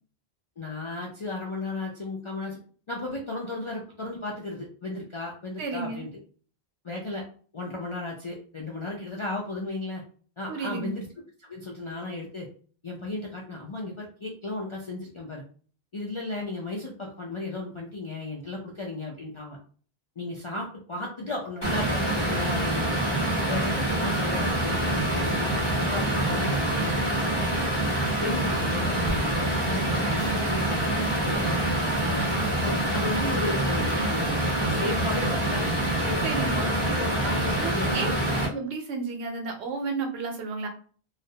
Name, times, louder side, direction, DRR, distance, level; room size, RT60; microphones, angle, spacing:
voice 1, 0.6-2.6 2.9-6.1 6.8-7.2 7.5-10.0 10.4-11.1 11.4-12.5 12.8-15.4 15.9-19.6 20.2-22.9 23.4-27.0 27.2-29.3 29.6-32.3 32.6-35.6 36.1-36.2 36.5-38.3, left 2 dB, 55° left, -3 dB, 0.3 m, -35 dB
voice 2, 5.6-6.0 10.5-10.9 36.2-36.7 37.6-38.1 38.5-40.7, right 4 dB, 85° right, 3 dB, 0.9 m, -32 dB
sound 1, 21.6-38.5, right 1 dB, 25° left, 0.9 m, -26 dB
2.4 x 2.0 x 2.7 m, 0.43 s
omnidirectional pair, 1.1 m